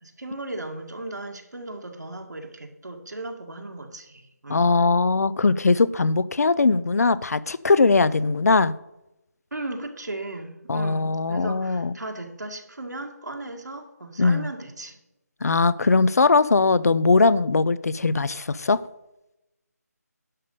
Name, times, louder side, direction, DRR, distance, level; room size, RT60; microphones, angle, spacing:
voice 1, 0.0-4.6 6.6-6.8 9.5-15.0, right 2 dB, 85° right, 3 dB, 2.0 m, -36 dB
voice 2, 4.5-8.7 10.7-11.9 14.2-14.5 15.4-18.8, left 3 dB, 65° left, 18 dB, 0.5 m, -20 dB
11.0 x 5.3 x 6.7 m, 0.91 s
figure-of-eight pair, 165°, 9 cm